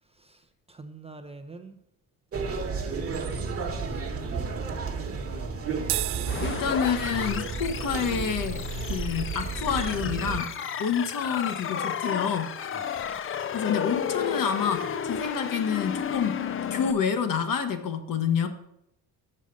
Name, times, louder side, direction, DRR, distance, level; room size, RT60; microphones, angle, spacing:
voice 1, 0.0-1.8 3.8-5.1 12.7-13.1, right 3 dB, 15° right, 7 dB, 0.5 m, -47 dB
sound 1, 2.3-10.4, right 4 dB, 35° right, 1.3 m, -32 dB
sound 2, 5.8-12.4, right 15 dB, 80° right, 0.6 m, -39 dB
sound 3, 6.3-16.9, left 8 dB, 35° left, 0.4 m, -33 dB
voice 2, 6.4-8.6 8.9-10.5 10.8-12.5 13.5-16.3 16.7-18.5, left 7 dB, 60° left, 7 dB, 1.1 m, -28 dB
6.5 x 6.4 x 5.2 m, 0.80 s
cardioid pair, 110°, 38 cm